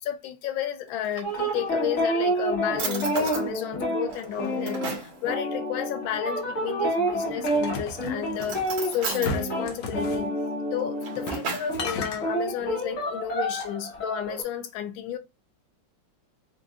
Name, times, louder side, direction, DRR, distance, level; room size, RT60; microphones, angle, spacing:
voice 1, 0.0-8.6 8.9-10.3 10.7-15.2, left 10 dB, 85° left, 1.4 m, -32 dB
Drawer open or close, 0.9-1.8 2.4-2.5 2.8-3.5 4.1-5.2 7.0-7.6 8.3-9.4 10.7-11.8, right 4 dB, 80° right, 2.1 m, -35 dB
sound 1, 1.2-11.4 11.7-14.4, right 1 dB, 45° left, 1.5 m, -29 dB
sound 2, 7.5-8.7 9.2-10.2 11.1-11.5 11.7-12.2, left 3 dB, 65° left, 1.2 m, -34 dB
5.1 x 2.5 x 2.3 m
omnidirectional pair, 2.1 m